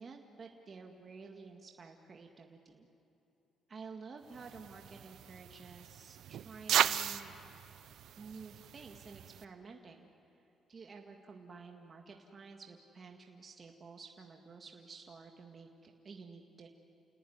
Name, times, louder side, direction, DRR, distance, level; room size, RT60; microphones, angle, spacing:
voice 1, 0.0-2.9 3.7-7.3 8.2-10.1 10.7-16.7, right 4 dB, 40° right, 2 dB, 2.0 m, -51 dB
sound 1, 4.3-9.4, right 10 dB, 75° right, 0.7 m, -36 dB
29.5 x 18.5 x 9.6 m, 3.0 s
cardioid pair, 90°, 0 cm